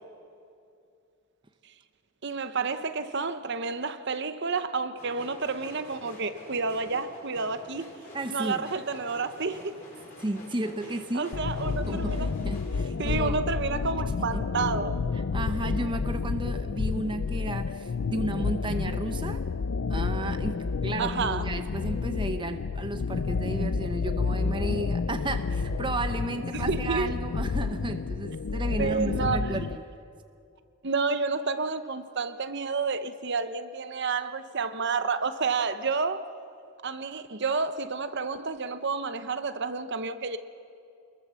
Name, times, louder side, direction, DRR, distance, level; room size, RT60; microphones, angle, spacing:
voice 1, 2.2-7.9 8.3-9.8 11.1-12.3 13.0-15.0 21.0-21.5 26.5-27.1 28.8-29.5 30.8-36.3 36.8-40.4, right 4 dB, 50° right, 0.9 m, -30 dB
sound 1, 5.0-12.8, left 1 dB, 35° left, 5.6 m, -47 dB
voice 2, 8.1-8.6 10.2-11.3 11.9-13.4 15.3-19.4 19.9-29.8, right 2 dB, 20° right, 0.8 m, -33 dB
sound 2, 11.3-29.8, left 4 dB, 65° left, 0.5 m, -30 dB
27.5 x 21.0 x 7.0 m
head